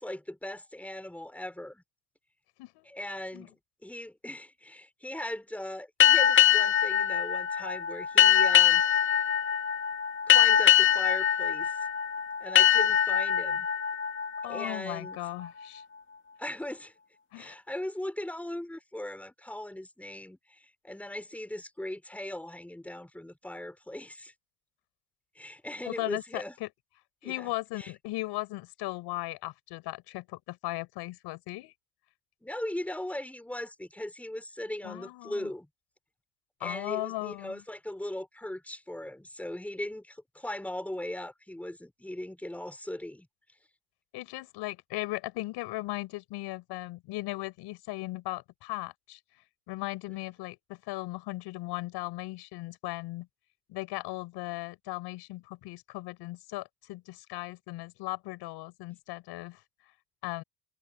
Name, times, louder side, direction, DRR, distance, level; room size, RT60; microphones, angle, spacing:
voice 1, 0.0-1.8 2.8-3.5 3.8-8.8 10.3-11.8 12.4-13.7 14.4-15.2 16.4-16.9 17.3-24.3 25.3-26.6 27.2-27.5 27.8-27.9 32.4-35.7 36.6-43.3, left 1 dB, 5° left, 4.4 m, -39 dB
sound 1, 6.0-15.3, left 10 dB, 30° left, 2.0 m, -23 dB
voice 2, 14.4-15.8 17.3-17.5 25.8-26.7 27.2-31.7 34.8-35.5 36.6-37.6 44.1-49.2 49.7-53.3 53.7-59.6 60.2-60.4, left 19 dB, 85° left, 7.5 m, -37 dB
cardioid pair, 125°, 39 cm